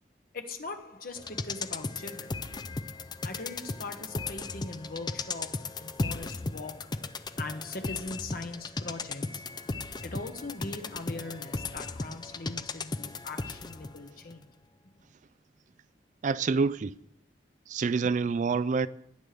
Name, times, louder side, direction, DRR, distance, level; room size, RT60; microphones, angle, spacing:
voice 1, 0.3-2.7 3.2-7.1 7.4-9.5 10.0-14.5 18.0-18.1, left 3 dB, 55° left, 1.3 m, -41 dB
sound 1, 1.1-14.0 14.3-14.4, left 3 dB, 25° left, 0.4 m, -36 dB
voice 2, 16.2-17.0 17.7-18.9, right 4 dB, 45° right, 0.3 m, -27 dB
18.5 x 9.2 x 3.5 m
head